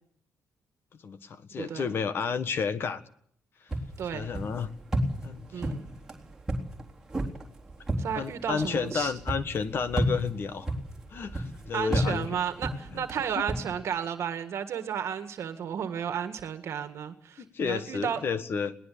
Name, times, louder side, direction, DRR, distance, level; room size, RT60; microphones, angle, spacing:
voice 1, 1.0-3.0 4.1-4.7 5.2-5.8 8.1-10.8 11.1-12.3 12.9-13.0 17.4-18.7, left 6 dB, 40° left, 12 dB, 1.5 m, -31 dB
sound 1, 3.7-13.6, right 1 dB, 10° right, 3.7 m, -33 dB
voice 2, 5.5-5.8 8.0-9.1 11.7-18.2, right 8 dB, 55° right, 9 dB, 1.8 m, -33 dB
21.5 x 18.5 x 8.5 m, 0.64 s
cardioid pair, 175°, 6 cm